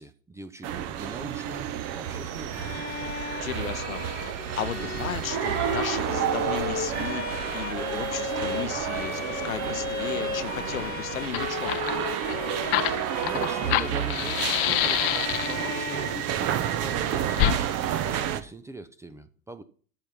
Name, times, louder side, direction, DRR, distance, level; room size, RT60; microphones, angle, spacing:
voice 1, 0.0-2.8 12.7-19.6, right 1 dB, 5° right, 0.6 m, -42 dB
sound 1, 0.6-18.4, right 10 dB, 35° right, 1.0 m, -30 dB
Bowed string instrument, 2.5-16.8, left 7 dB, 20° left, 1.5 m, -36 dB
voice 2, 3.2-11.9, left 9 dB, 75° left, 0.9 m, -35 dB
Fire, 10.9-11.0 11.2-15.7 17.3-17.6, left 15 dB, 45° left, 0.8 m, -27 dB
13.0 x 4.5 x 7.2 m
figure-of-eight pair, 85°, 42 cm